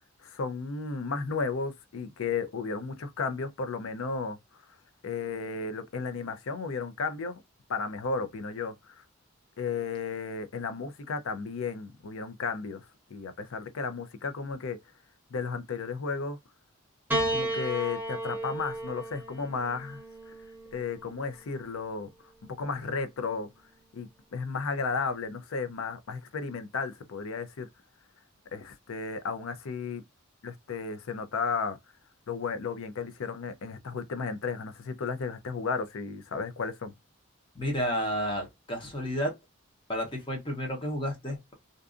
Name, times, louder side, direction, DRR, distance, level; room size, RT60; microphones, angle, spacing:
voice 1, 0.2-4.4 5.0-7.4 7.7-9.0 9.6-12.8 13.1-14.8 15.3-16.4 17.3-20.3 20.7-22.1 22.5-23.5 23.9-27.7 28.5-30.0 30.4-31.8 32.3-36.9, left 4 dB, 80° left, 0.5 m, -34 dB
Piano, 17.1-21.6 22.6-23.4, right 1 dB, 10° right, 0.9 m, -34 dB
voice 2, 37.5-39.3 39.9-41.5, equal, 25° left, 0.8 m, -31 dB
2.6 x 2.3 x 2.4 m
head